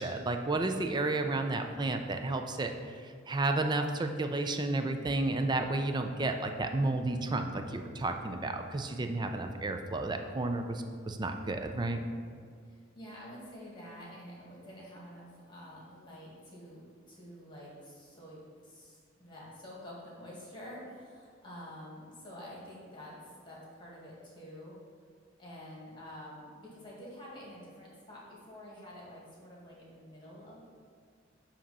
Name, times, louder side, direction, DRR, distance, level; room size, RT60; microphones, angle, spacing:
voice 1, 0.0-12.0, right 2 dB, 20° right, 5 dB, 0.4 m, -32 dB
voice 2, 12.6-24.8 25.4-30.6, equal, 25° left, -5 dB, 1.7 m, -48 dB
7.5 x 2.9 x 5.4 m, 2.1 s
head